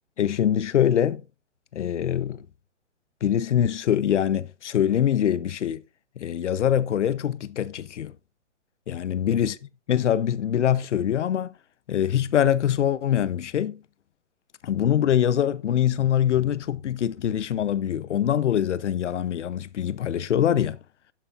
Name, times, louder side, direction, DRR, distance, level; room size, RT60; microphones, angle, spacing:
voice 1, 0.2-1.2 1.7-2.4 3.2-5.8 6.2-8.1 8.9-9.6 9.9-11.5 11.9-13.8 14.6-20.8, left 10 dB, 75° left, 0.9 m, -24 dB
12.0 x 9.8 x 2.6 m
hypercardioid pair, 155°, 36 cm